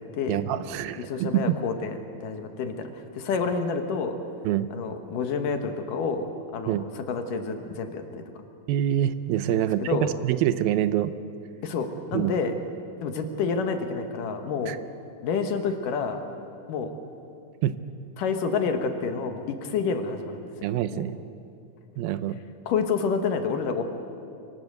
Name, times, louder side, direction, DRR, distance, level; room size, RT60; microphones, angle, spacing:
voice 1, 0.3-1.6 4.4-4.7 6.7-6.8 8.7-11.1 12.1-12.4 14.7-14.8 17.6-17.7 20.6-21.2 22.0-22.4, right 11 dB, 90° right, 13 dB, 2.6 m, -25 dB
voice 2, 1.1-1.9 2.2-4.2 4.7-8.2 9.5-10.1 11.6-12.5 13.0-14.8 15.2-16.2 16.7-16.9 18.2-20.4 20.9-21.0 22.7-23.8, left 5 dB, 70° left, 6 dB, 2.8 m, -28 dB
25.0 x 19.0 x 8.0 m, 2.6 s
omnidirectional pair, 4.2 m